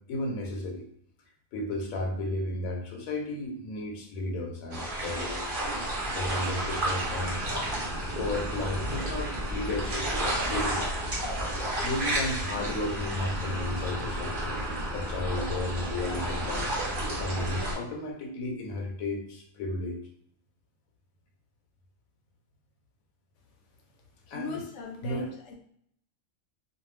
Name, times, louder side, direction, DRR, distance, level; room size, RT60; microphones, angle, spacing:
voice 1, 0.1-0.9 1.5-5.5 6.1-7.4 8.1-10.9 11.8-14.6 14.9-16.7 17.2-20.0 24.3-24.6 25.0-25.3, left 2 dB, 85° left, 1 dB, 1.1 m, -33 dB
sound 1, 4.7-17.7, right 1 dB, 45° right, 0.8 m, -31 dB
voice 2, 24.3-25.5, left 4 dB, 65° left, 1 dB, 0.9 m, -39 dB
2.5 x 2.2 x 3.2 m, 0.68 s
omnidirectional pair, 1.4 m